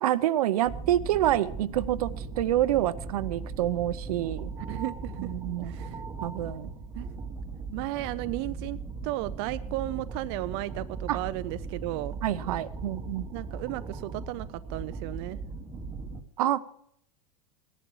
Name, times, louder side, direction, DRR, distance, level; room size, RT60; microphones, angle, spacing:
voice 1, 0.0-4.5 5.2-5.9 6.2-6.7 11.1-11.2 12.2-13.3 16.4-16.6, right 13 dB, 80° right, 14 dB, 0.8 m, -27 dB
sound 1, 0.7-16.2, right 4 dB, 15° right, 0.9 m, -38 dB
voice 2, 4.7-5.3 5.6-6.0 7.0-7.1 7.7-8.8 9.0-12.2 13.3-15.4, right 17 dB, 45° right, 13 dB, 0.4 m, -34 dB
17.5 x 11.0 x 4.8 m, 0.70 s
supercardioid pair, 155°, 19 cm